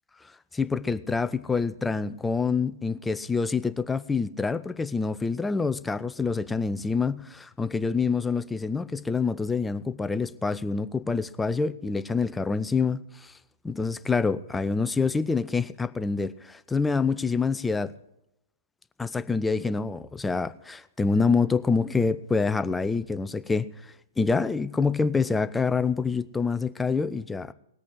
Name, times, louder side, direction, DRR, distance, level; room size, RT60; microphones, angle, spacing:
voice 1, 0.5-13.3 13.6-17.9 19.0-23.7 24.2-27.5, left 4 dB, 10° left, 0.5 m, -26 dB
19.0 x 8.4 x 6.3 m
figure-of-eight pair, 110°, 0 cm